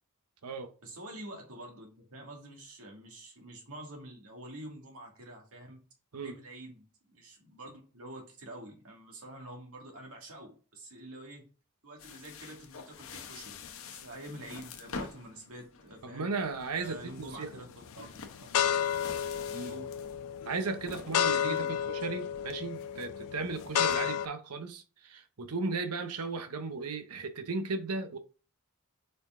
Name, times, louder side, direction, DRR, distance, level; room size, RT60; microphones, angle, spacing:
voice 1, 0.8-5.8 6.2-11.5 11.8-16.3 16.7-17.7 18.0-18.1 18.4-18.6 19.6-19.9 21.4-21.8, right 1 dB, 70° right, 2.3 m, -47 dB
sound 1, 12.0-24.0, left 5 dB, 65° left, 0.9 m, -48 dB
voice 2, 16.0-17.5 19.5-19.7 20.5-28.2, right 4 dB, 85° right, 0.9 m, -36 dB
sound 2, 16.9-17.4 17.9-24.3, left 9 dB, 80° left, 0.4 m, -32 dB
5.2 x 4.7 x 3.8 m
head